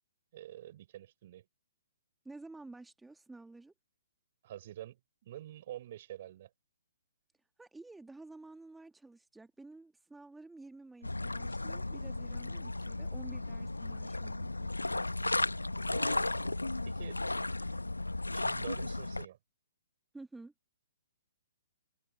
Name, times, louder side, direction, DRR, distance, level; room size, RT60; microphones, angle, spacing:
voice 1, 0.3-1.4 4.4-6.5 15.9-17.7 18.3-19.4, right 13 dB, 45° right, 5.1 m, -48 dB
voice 2, 2.3-3.7 7.6-14.7 20.1-20.5, right 3 dB, 5° right, 1.7 m, -51 dB
sound 1, 11.0-19.3, left 2 dB, 85° left, 1.1 m, -35 dB
figure-of-eight pair, 125°, 0 cm